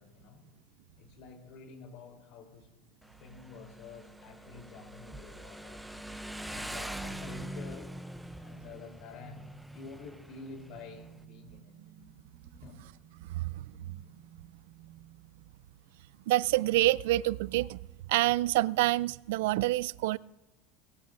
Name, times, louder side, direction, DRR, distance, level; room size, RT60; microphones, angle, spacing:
voice 1, 0.0-2.9 3.2-5.8 6.5-7.9 8.3-9.4 9.7-11.8 12.5-12.8, left 4 dB, 55° left, 3.5 m, -49 dB
Motorcycle, 3.0-11.2, right 1 dB, ahead, 0.6 m, -44 dB
sound 1, 9.9-16.3, right 10 dB, 55° right, 3.1 m, -57 dB
voice 2, 13.3-13.7 16.3-17.8 18.1-20.2, right 17 dB, 80° right, 0.3 m, -27 dB
19.5 x 16.5 x 2.6 m
supercardioid pair, 145°, 0 cm